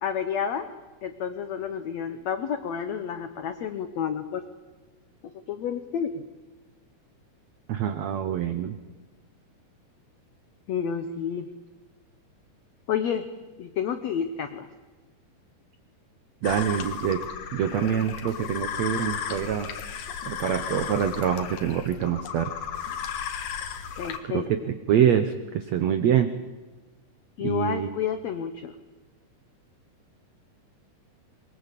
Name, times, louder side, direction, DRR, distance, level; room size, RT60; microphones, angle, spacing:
voice 1, 0.0-0.7 1.0-4.4 5.2-6.2 10.7-11.5 12.9-13.3 13.6-14.7 24.0-24.5 27.4-28.7, left 8 dB, 85° left, 9 dB, 1.5 m, -30 dB
voice 2, 7.7-8.8 16.4-17.2 17.5-19.7 20.2-22.5 24.2-26.3 27.4-27.9, right 9 dB, 80° right, 9 dB, 1.5 m, -25 dB
sound 1, 16.4-24.2, left 8 dB, 65° left, 3.0 m, -34 dB
22.0 x 22.0 x 8.3 m, 1.3 s
omnidirectional pair, 4.5 m